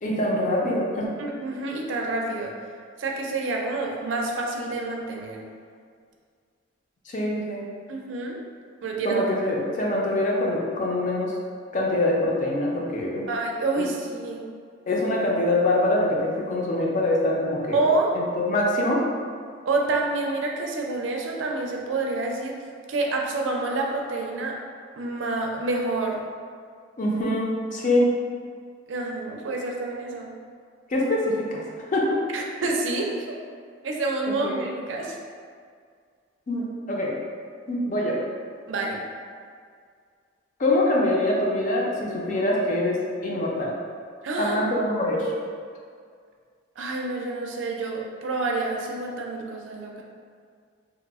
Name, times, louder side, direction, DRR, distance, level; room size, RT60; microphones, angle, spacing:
voice 1, 0.0-1.1 7.1-7.6 9.0-11.3 11.7-13.3 14.9-17.8 18.1-19.0 27.0-28.1 30.9-31.6 31.9-32.2 34.3-34.6 36.5-37.1 37.7-38.2 40.6-43.8 44.4-45.3, left 1 dB, 45° left, -3 dB, 0.5 m, -24 dB
voice 2, 1.2-2.5 3.0-5.4 7.9-8.4 8.8-9.2 13.3-14.4 17.7-18.1 19.7-22.6 22.9-24.6 25.0-26.2 28.9-30.3 32.3-33.1 33.8-35.2 38.7-39.0 44.2-44.6 46.8-50.0, right 3 dB, 75° right, 0 dB, 0.4 m, -28 dB
2.8 x 2.0 x 3.4 m, 2.1 s
head